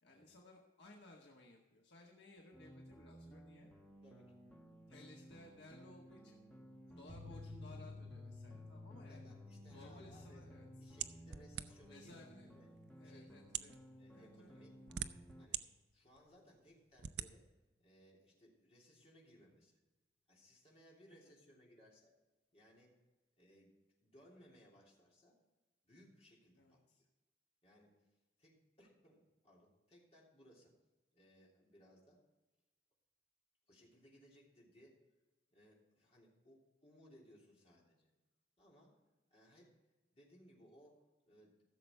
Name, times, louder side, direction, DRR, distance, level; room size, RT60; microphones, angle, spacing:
voice 1, 0.0-3.7 4.9-6.4 6.9-9.3 9.7-10.7 11.9-12.5 13.0-13.8 14.1-14.6 21.1-21.3 26.6-27.0, left 2 dB, 70° left, -1 dB, 1.4 m, -60 dB
sound 1, 2.5-15.5, right 1 dB, 5° left, 0.9 m, -58 dB
voice 2, 4.0-4.3 9.1-10.4 10.7-12.7 13.0-13.3 13.9-14.8 15.4-15.6 15.9-17.5 17.8-19.8 20.3-22.1 22.5-22.9 23.4-25.4 25.8-26.8 27.6-27.9 28.4-30.7 31.1-32.2 33.7-35.0 35.5-38.1 38.6-39.0 39.3-39.7 40.1-41.6, equal, 35° left, -4 dB, 3.1 m, -65 dB
sound 2, 7.1-14.2 14.4-14.6 14.9-15.0, left 3 dB, 80° right, 3.1 m, -55 dB
sound 3, 11.0-12.0 12.8-12.9 13.4-13.8 14.6-15.6 16.1-16.2 17.0-17.3, right 10 dB, 60° right, 0.5 m, -42 dB
15.0 x 6.9 x 4.5 m, 1.1 s
head